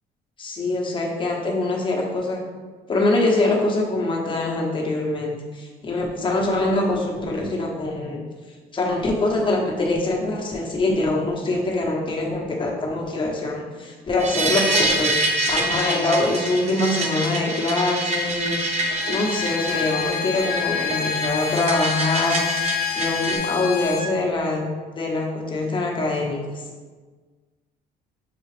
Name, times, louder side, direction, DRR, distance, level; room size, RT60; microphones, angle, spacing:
voice 1, 0.4-2.4 2.9-8.2 8.7-22.5 22.9-24.7 24.9-26.6, left 2 dB, 30° left, -1 dB, 0.9 m, -24 dB
sound 1, 14.2-23.4, right 2 dB, 40° right, 0.7 m, -26 dB
Bowed string instrument, 18.8-24.1, left 7 dB, 60° left, 0.6 m, -28 dB
6.7 x 2.4 x 3.3 m, 1.4 s
cardioid pair, 110°, 17 cm